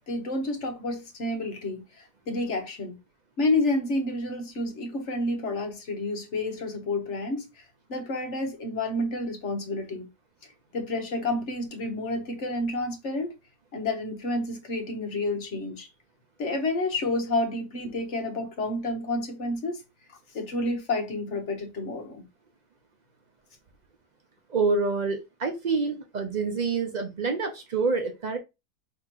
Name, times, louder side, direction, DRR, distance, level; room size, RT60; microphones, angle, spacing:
voice 1, 0.0-3.0 3.4-7.6 7.9-10.1 10.7-13.3 13.7-15.9 16.4-19.8 20.3-22.2, left 2 dB, 50° left, 1.2 m, -29 dB
voice 2, 24.5-28.4, right 4 dB, 85° right, 0.4 m, -27 dB
5.8 x 2.9 x 2.9 m
omnidirectional pair, 1.7 m